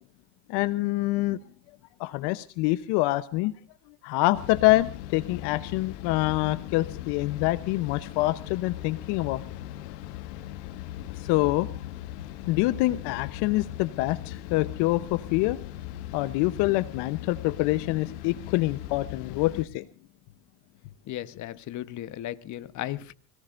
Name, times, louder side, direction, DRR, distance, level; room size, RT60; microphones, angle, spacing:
voice 1, 0.5-1.4 2.0-3.5 4.0-9.4 11.1-11.7 12.5-15.6 16.1-19.9, left 18 dB, 55° left, 14 dB, 1.0 m, -26 dB
sound 1, 4.3-19.6, left 13 dB, 70° left, 1.7 m, -39 dB
voice 2, 21.1-23.1, left 13 dB, 35° left, 12 dB, 1.2 m, -35 dB
25.5 x 18.0 x 2.6 m, 0.39 s
supercardioid pair, 130°, 48 cm